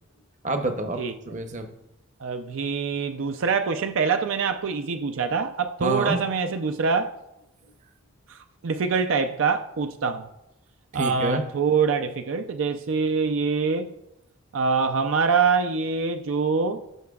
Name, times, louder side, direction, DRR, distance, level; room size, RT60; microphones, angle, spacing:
voice 1, 0.4-1.7 5.8-6.2 7.6-7.7 10.9-11.5, right 2 dB, 35° right, 0.7 m, -28 dB
voice 2, 2.2-7.1 8.3-10.3 10.9-13.9 14.5-16.8, right 5 dB, 75° right, 0.4 m, -24 dB
13.5 x 5.7 x 2.3 m
head